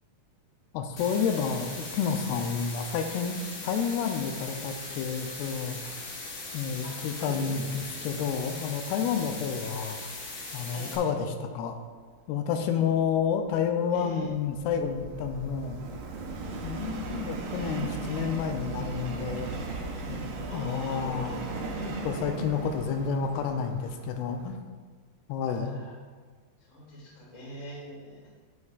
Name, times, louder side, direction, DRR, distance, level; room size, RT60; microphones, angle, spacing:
voice 1, 0.7-6.0 6.5-10.0 10.5-11.8 12.3-15.8 16.6-19.5 20.1-21.4 22.0-24.6 25.3-25.8, left 6 dB, 85° left, 6 dB, 2.6 m, -30 dB
sound 1, 1.0-11.0, left 2 dB, 65° left, 1.3 m, -39 dB
voice 2, 6.8-7.7 10.7-10.9 13.9-14.3 20.5-22.9 25.5-26.0 26.6-28.3, left 1 dB, 25° left, -5 dB, 0.9 m, -43 dB
Subway metro underground, 13.2-24.5, right 3 dB, 75° right, 2.1 m, -37 dB
9.8 x 8.3 x 2.4 m, 1.5 s
omnidirectional pair, 4.6 m